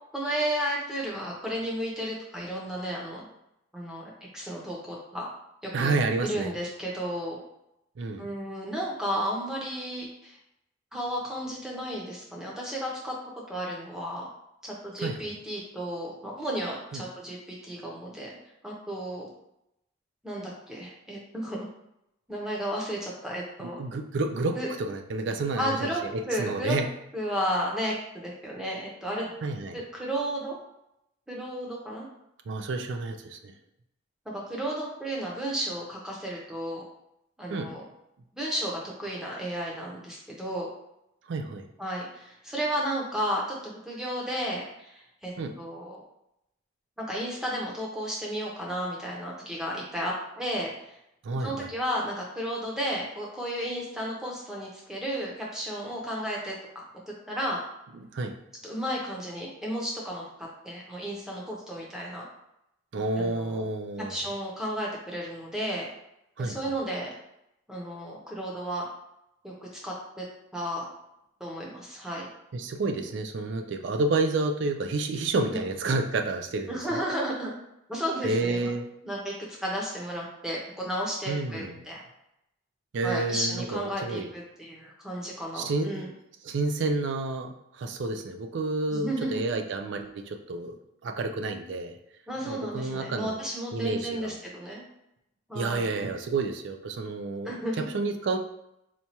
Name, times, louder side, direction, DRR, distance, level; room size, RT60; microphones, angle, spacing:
voice 1, 0.1-3.2 3.7-4.0 4.3-5.3 5.6-5.9 6.2-7.4 8.2-10.4 10.9-13.1 13.5-14.3 14.6-18.4 18.6-19.3 20.2-21.7 22.3-23.8 24.6-24.7 25.6-26.0 26.3-26.8 27.1-29.3 29.7-30.6 31.3-32.1 34.3-36.8 37.4-37.8 38.3-40.7 41.8-46.0 47.0-50.7 51.4-56.8 57.3-57.6 58.6-62.2 63.2-63.6 64.1-65.9 66.4-67.1 67.7-68.9 69.4-69.5 69.8-70.3 70.5-70.8 71.4-72.3 75.5-75.6 76.7-77.5 77.9-78.7 79.0-79.3 79.6-82.0 83.0-86.1 88.9-89.4 92.3-94.8 95.5-96.0 97.4-97.9, equal, 5° right, -4 dB, 0.7 m, -33 dB
voice 2, 5.7-6.5 8.0-8.3 15.0-15.3 16.9-17.0 23.6-26.9 29.4-29.8 32.5-33.5 37.5-37.7 41.3-41.7 45.4-45.5 51.2-51.7 57.9-58.3 62.9-64.2 66.4-66.6 72.5-77.0 78.2-78.9 81.3-81.7 82.9-84.3 85.5-86.0 86.4-90.8 91.0-92.0 92.4-93.4 93.7-94.4 95.5-97.5 97.8-98.4, right 3 dB, 60° right, 6 dB, 0.4 m, -30 dB
4.2 x 2.2 x 2.9 m, 0.82 s
head